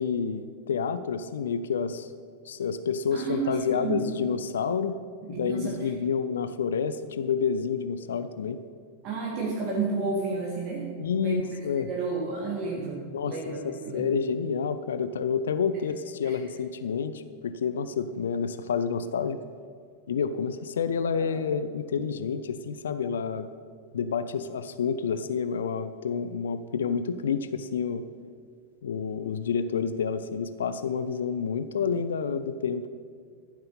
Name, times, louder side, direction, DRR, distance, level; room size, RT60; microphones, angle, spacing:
voice 1, 0.0-2.1 2.4-5.0 5.3-8.6 11.0-11.9 13.1-19.4 20.1-23.5 23.9-28.0 28.8-32.9, left 6 dB, 65° left, 12 dB, 0.5 m, -29 dB
voice 2, 3.1-4.1 5.2-5.9 9.0-10.9 11.1-11.6 11.9-14.1 15.7-15.8 16.2-16.4 21.2-21.4, right 4 dB, 40° right, -2 dB, 1.9 m, -31 dB
14.0 x 7.7 x 5.6 m, 2.1 s
figure-of-eight pair, 90°, 0 cm